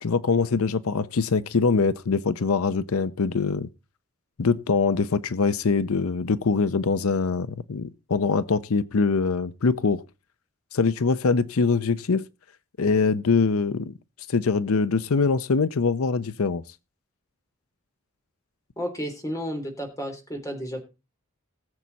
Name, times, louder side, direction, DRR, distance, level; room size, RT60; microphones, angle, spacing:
voice 1, 0.0-3.7 4.4-10.0 10.7-12.2 12.8-13.9 14.3-16.6, left 4 dB, 90° left, 0.6 m, -23 dB
voice 2, 18.8-20.8, equal, 15° left, 3.3 m, -32 dB
19.0 x 7.4 x 4.1 m
head